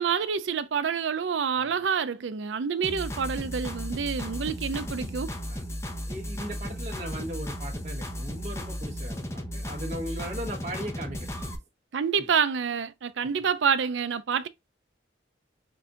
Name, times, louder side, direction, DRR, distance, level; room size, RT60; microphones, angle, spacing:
voice 1, 0.0-5.3 11.9-14.5, right 6 dB, 80° right, 0.5 m, -27 dB
sound 1, 2.8-11.5, equal, 15° left, 0.7 m, -35 dB
voice 2, 6.1-11.3 12.2-12.3, equal, 40° right, 1.4 m, -38 dB
6.0 x 2.6 x 2.4 m
head